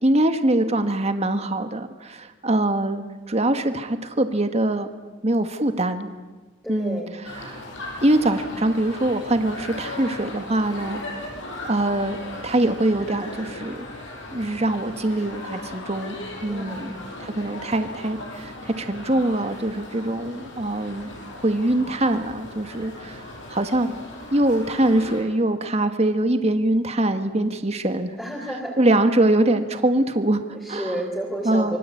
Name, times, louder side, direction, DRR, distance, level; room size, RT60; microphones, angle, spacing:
voice 1, 0.0-4.9 5.2-6.1 6.7-7.0 7.3-7.6 8.0-11.0 11.7-12.2 12.4-13.8 14.3-16.1 16.4-16.9 17.2-21.1 21.4-23.9 24.3-28.2 28.8-30.4 30.7-30.9 31.4-31.8, right 1 dB, 35° right, 8 dB, 1.5 m, -23 dB
voice 2, 6.6-7.1 16.4-17.0 28.2-28.8 30.1-31.8, equal, 5° left, -4 dB, 4.0 m, -31 dB
sound 1, 7.2-25.2, left 2 dB, 80° left, 6.3 m, -38 dB
26.5 x 23.5 x 8.5 m, 1.2 s
head